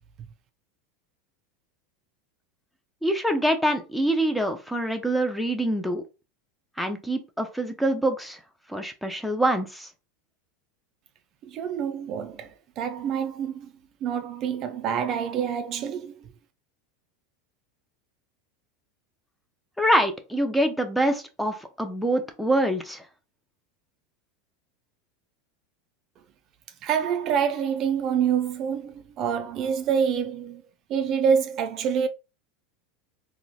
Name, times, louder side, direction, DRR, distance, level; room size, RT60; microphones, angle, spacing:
voice 1, 3.0-6.0 6.8-8.4 8.7-9.9 19.8-23.0, right 1 dB, ahead, 0.6 m, -25 dB
voice 2, 11.4-13.7 14.0-16.3 26.8-30.6 30.9-32.1, right 7 dB, 45° right, 0.3 m, -26 dB
3.8 x 2.1 x 2.3 m
hypercardioid pair, 95°, 0 cm